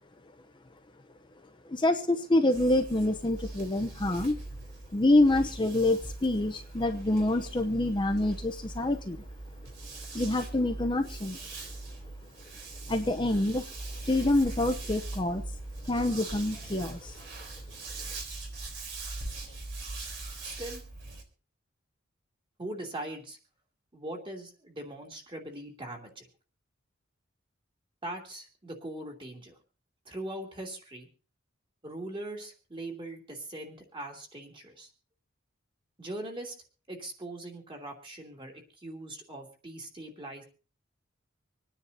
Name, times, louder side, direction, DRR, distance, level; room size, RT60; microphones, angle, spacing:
voice 1, 1.7-4.4 4.9-9.2 10.1-11.4 12.9-13.6 14.1-15.4 15.9-17.1, left 2 dB, 25° left, 5 dB, 0.7 m, -26 dB
sound 1, 2.5-21.2, right 2 dB, 60° right, 3.7 m, -41 dB
voice 2, 20.4-20.8 22.6-23.4 23.9-26.2 28.0-29.6 30.0-31.1 31.8-34.9 36.0-36.5 36.9-40.4, right 1 dB, 25° right, 1 dB, 2.9 m, -41 dB
26.5 x 9.9 x 2.8 m, 0.37 s
head